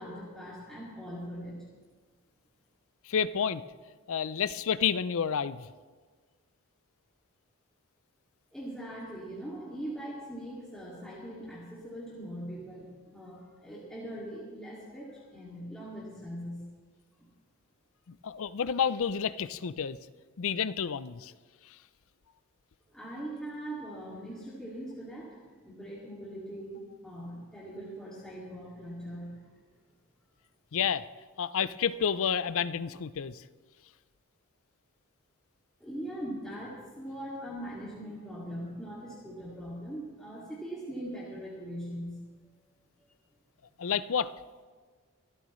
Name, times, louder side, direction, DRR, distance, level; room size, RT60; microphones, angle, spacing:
voice 1, 0.0-1.7 8.5-16.7 17.2-17.3 22.9-25.4 25.6-29.5 35.8-42.2, right 1 dB, 5° left, -7 dB, 2.3 m, -41 dB
voice 2, 3.1-3.6 4.1-5.6 18.2-20.0 20.4-21.3 30.7-31.0 31.4-33.4 43.8-44.3, left 7 dB, 65° left, 15 dB, 0.5 m, -30 dB
25.0 x 13.0 x 3.2 m, 1.4 s
head